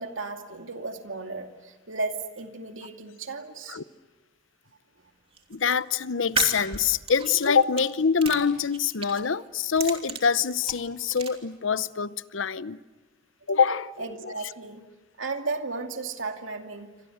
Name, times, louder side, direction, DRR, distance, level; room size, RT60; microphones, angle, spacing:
voice 1, 0.0-3.8 13.5-13.6 14.0-14.8 15.2-16.9, right 3 dB, 80° right, 2.5 m, -34 dB
sound 1, 5.3-5.7 6.2-7.8 8.2-9.2 9.6-11.3, right 4 dB, 30° right, 3.1 m, -33 dB
voice 2, 5.5-12.8 13.5-13.9 14.2-14.3, left 6 dB, 75° left, 0.8 m, -25 dB
28.5 x 25.5 x 8.0 m
head